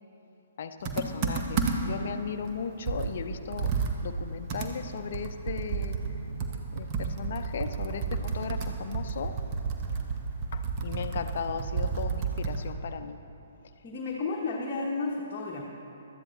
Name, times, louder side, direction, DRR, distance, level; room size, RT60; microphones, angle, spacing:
voice 1, 0.6-3.7 4.0-6.0 6.7-9.4 10.5-13.2, left 6 dB, 50° left, 9 dB, 0.6 m, -36 dB
Computer keyboard, 0.8-2.0 2.5-2.6 2.9-12.7, right 5 dB, 30° right, 1.0 m, -31 dB
sound 1, 6.0-9.2, right 4 dB, 60° right, 0.7 m, -48 dB
voice 2, 13.8-15.6, left 3 dB, 25° left, -4 dB, 1.2 m, -32 dB
16.0 x 12.5 x 3.2 m, 2.9 s
figure-of-eight pair, 125°, 0 cm